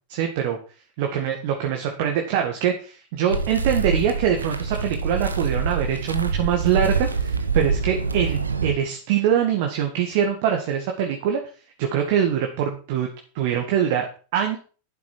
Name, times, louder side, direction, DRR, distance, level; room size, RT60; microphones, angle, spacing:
voice 1, 0.1-0.6 1.0-11.4 11.8-13.1 13.3-14.1 14.3-14.6, right 9 dB, 50° right, 2 dB, 2.0 m, -23 dB
sound 1, 3.3-8.7, right 4 dB, 75° right, 1.3 m, -25 dB
11.5 x 11.0 x 4.6 m, 0.38 s
figure-of-eight pair, 90°, 0 cm